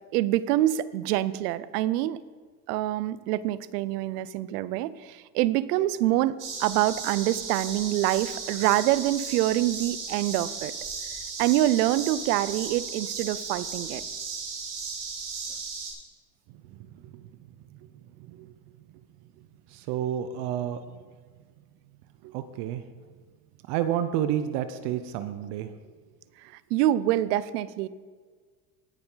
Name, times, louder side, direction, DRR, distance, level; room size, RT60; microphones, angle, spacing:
voice 1, 0.1-2.2 2.7-10.7 11.4-14.0 26.7-27.9, right 14 dB, 90° right, 18 dB, 0.6 m, -25 dB
sound 1, 6.4-15.9, right 5 dB, 45° right, 3.5 m, -36 dB
voice 2, 19.7-20.8 22.2-22.8 23.7-25.7, right 10 dB, 60° right, 10 dB, 0.8 m, -30 dB
18.5 x 7.0 x 3.9 m, 1.5 s
supercardioid pair, 120°, 46 cm